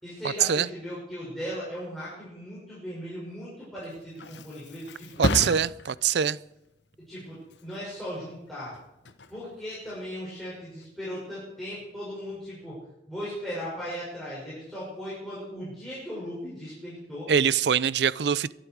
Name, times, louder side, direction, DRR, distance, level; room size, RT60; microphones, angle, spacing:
voice 1, 0.0-5.3 7.1-8.8 9.3-12.8 13.1-17.3, equal, ahead, 6.2 m, -37 dB
Thump thud, 3.6-11.1 11.5-11.9, left 2 dB, 80° left, 1.0 m, -36 dB
voice 2, 5.2-6.4 17.3-18.5, right 8 dB, 70° right, 0.5 m, -23 dB
23.0 x 11.5 x 4.7 m
head